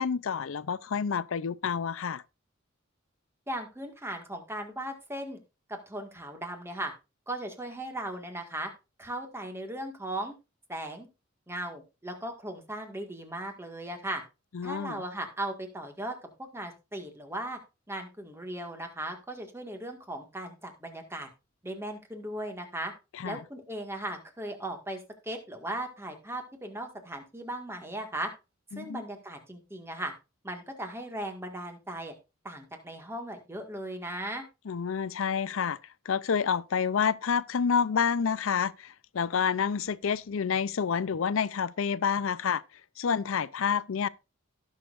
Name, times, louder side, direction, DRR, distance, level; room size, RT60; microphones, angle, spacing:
voice 1, 0.0-2.2 14.5-15.0 23.2-23.4 28.7-29.0 34.7-35.8 36.1-42.6 43.0-44.1, left 6 dB, 75° left, 0.5 m, -28 dB
voice 2, 3.5-5.4 5.7-6.9 7.3-8.7 9.0-10.4 10.7-11.1 11.5-14.2 14.6-17.6 17.9-21.3 21.6-22.9 23.2-28.3 28.7-30.1 30.4-32.1 32.4-34.4, right 1 dB, 10° right, 1.8 m, -37 dB
17.5 x 6.5 x 2.5 m
head